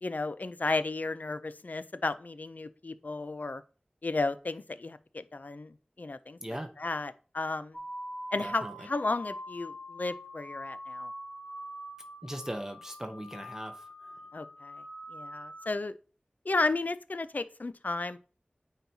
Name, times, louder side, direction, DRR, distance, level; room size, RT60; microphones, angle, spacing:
voice 1, 0.0-3.6 4.0-6.4 6.8-7.8 8.3-11.1 14.3-14.8 15.1-15.9 16.5-18.2, left 3 dB, 60° left, 0.4 m, -33 dB
sound 1, 7.7-15.7, equal, 35° left, 1.5 m, -43 dB
voice 2, 8.4-8.9 12.2-14.1, right 1 dB, 15° right, 0.8 m, -39 dB
9.1 x 4.4 x 2.7 m
wide cardioid pair, 50°, 3 cm